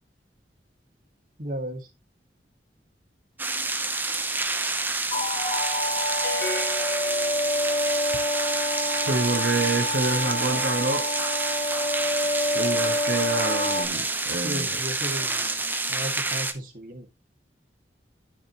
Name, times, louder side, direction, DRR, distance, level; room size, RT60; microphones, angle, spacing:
voice 1, 1.4-1.9 14.4-15.6 15.9-17.1, right 1 dB, 50° right, 2.2 m, -34 dB
sound 1, 3.4-16.5, right 3 dB, 10° right, 0.8 m, -28 dB
sound 2, 5.1-13.9, left 1 dB, 35° left, 1.2 m, -28 dB
sound 3, 6.2-8.0, left 3 dB, 55° left, 1.1 m, -35 dB
voice 2, 9.0-11.1 12.5-14.8, right 2 dB, 80° right, 1.3 m, -27 dB
12.5 x 5.2 x 3.0 m
head